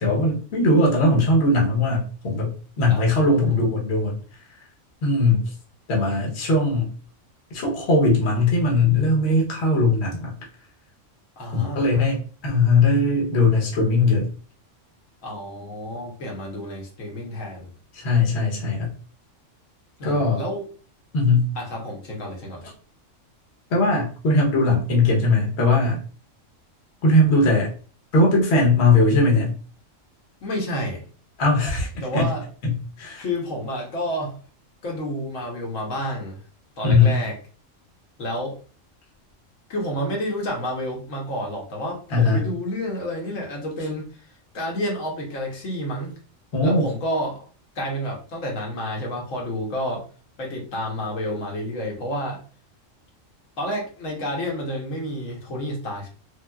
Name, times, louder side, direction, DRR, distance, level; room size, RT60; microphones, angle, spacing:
voice 1, 0.0-4.2 5.0-5.4 5.9-6.9 7.5-10.3 11.5-12.2 12.4-14.3 17.9-18.9 20.0-20.4 21.1-21.5 23.7-26.0 27.0-27.7 28.1-29.5 31.4-31.9 32.1-32.3 32.6-32.7 33.0-33.2 36.8-37.1 42.1-42.4 46.5-46.9, left 2 dB, 60° left, -2 dB, 1.1 m, -19 dB
voice 2, 2.9-3.6 6.2-6.3 11.4-12.1 15.2-17.7 20.0-20.7 21.5-22.7 30.4-31.0 32.0-32.5 33.2-34.3 34.8-36.4 36.8-37.3 38.2-38.6 39.7-44.0 44.5-46.1 46.6-47.4 47.7-50.0 50.4-52.4 53.6-56.1, equal, 80° left, -1 dB, 1.2 m, -30 dB
3.0 x 2.6 x 2.2 m, 0.39 s
omnidirectional pair, 1.3 m